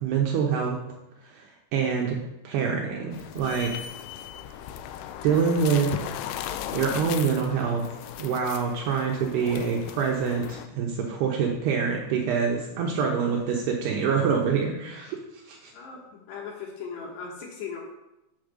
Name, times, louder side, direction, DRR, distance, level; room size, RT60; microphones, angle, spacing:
voice 1, 0.0-0.8 1.7-3.8 5.2-5.9 6.7-7.8 8.2-15.2 15.5-15.7, right 6 dB, 75° right, -1 dB, 2.5 m, -25 dB
sound 1, 3.1-10.7, left 10 dB, 90° left, 3.1 m, -37 dB
voice 2, 15.7-17.8, left 6 dB, 70° left, 0 dB, 2.9 m, -38 dB
8.8 x 5.0 x 6.6 m, 0.91 s
omnidirectional pair, 5.6 m